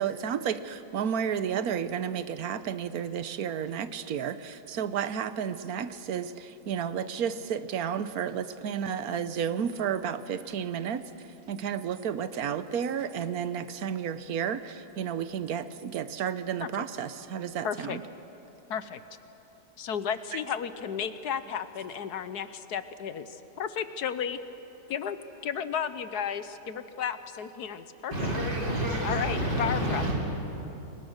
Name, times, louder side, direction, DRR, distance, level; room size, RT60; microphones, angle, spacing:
voice 1, 0.0-11.0 11.5-18.0, right 8 dB, 65° right, 12 dB, 1.3 m, -32 dB
voice 2, 17.6-18.0 18.7-19.0 19.8-24.4 24.9-25.2 25.4-28.3 29.0-30.0, left 8 dB, 70° left, 12 dB, 1.4 m, -33 dB
voice 3, 28.1-30.1, right 1 dB, 80° right, -4 dB, 6.4 m, -28 dB
30.0 x 23.5 x 6.5 m, 3.0 s
omnidirectional pair, 1.8 m